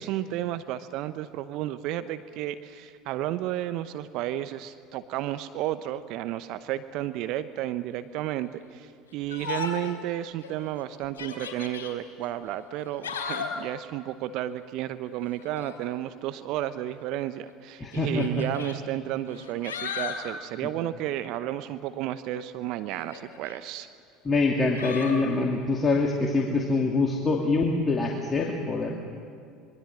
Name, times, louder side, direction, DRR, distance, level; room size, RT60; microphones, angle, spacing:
voice 1, 0.0-23.9, right 13 dB, 55° right, 12 dB, 0.8 m, -32 dB
Yell, 9.3-10.0 10.4-10.5 11.0-11.9 12.8-13.6 15.4-15.8 17.0-17.1 17.9-18.7 19.3-20.3 22.9-23.6 24.7-25.2, left 6 dB, 75° left, 3.5 m, -35 dB
voice 2, 17.8-18.4 20.6-20.7 24.2-29.0, left 3 dB, 25° left, 0 dB, 2.6 m, -25 dB
26.0 x 23.0 x 7.5 m, 2.4 s
figure-of-eight pair, 70°, 0 cm